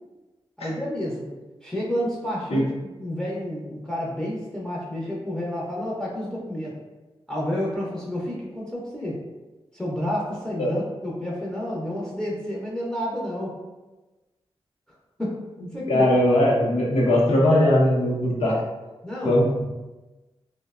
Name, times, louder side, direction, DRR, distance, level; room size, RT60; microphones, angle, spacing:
voice 1, 0.6-1.3 1.6-2.7 3.0-6.8 7.3-9.2 9.7-13.6 15.2-15.4 15.7-16.0 19.0-19.4, equal, 5° left, -5 dB, 0.5 m, -30 dB
voice 2, 15.9-18.6 19.2-19.6, left 1 dB, 75° left, -3 dB, 0.6 m, -20 dB
2.7 x 2.0 x 2.3 m, 1.1 s
wide cardioid pair, 110°, 10 cm